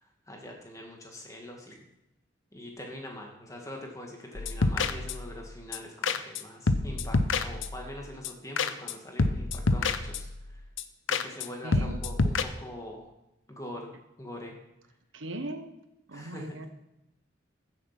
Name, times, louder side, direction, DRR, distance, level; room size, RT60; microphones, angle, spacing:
voice 1, 0.0-1.8 2.5-10.6 11.1-13.1 13.5-14.6 16.1-16.7, left 1 dB, 15° left, 2.1 m, -43 dB
sound 1, 4.3-5.4 5.7-5.8 6.0-6.4 6.7-7.9 8.2-8.3 8.6-8.9 9.2-10.4 10.8-10.9 11.1-11.5 11.7-12.4, left 3 dB, 85° left, 0.8 m, -28 dB
voice 2, 11.6-12.0 15.1-15.7 16.1-16.7, right 1 dB, 80° right, 1.2 m, -38 dB
14.0 x 7.6 x 5.9 m
head